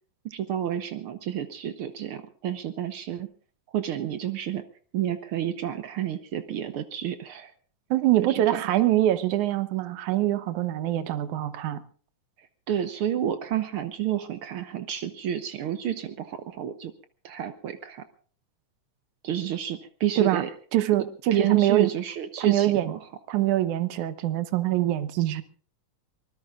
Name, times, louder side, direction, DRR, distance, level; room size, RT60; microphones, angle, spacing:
voice 1, 0.2-3.3 3.7-4.6 4.9-7.5 8.2-8.8 12.4-16.9 17.2-18.0 19.2-20.5 21.3-23.1, right 10 dB, 90° right, 10 dB, 1.2 m, -30 dB
voice 2, 7.9-11.8 20.2-20.4 20.7-21.9 22.4-22.9 23.3-25.4, right 14 dB, 70° right, 13 dB, 2.3 m, -24 dB
24.5 x 20.5 x 2.4 m, 0.42 s
omnidirectional pair, 3.8 m